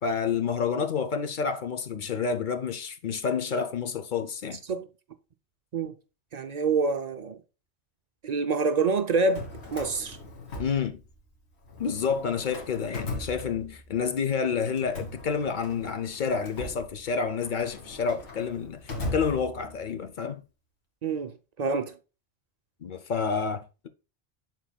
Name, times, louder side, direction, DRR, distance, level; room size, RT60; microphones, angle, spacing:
voice 1, 0.0-4.6 10.6-11.0 11.8-20.4 22.8-23.9, left 6 dB, 55° left, 0.7 m, -29 dB
voice 2, 6.3-7.4 8.2-10.2 21.0-22.0, right 4 dB, 50° right, 0.5 m, -27 dB
Drawer open or close, 9.2-11.3 11.6-14.0 14.7-19.9, left 1 dB, 90° left, 1.8 m, -39 dB
11.5 x 4.0 x 2.2 m
omnidirectional pair, 1.1 m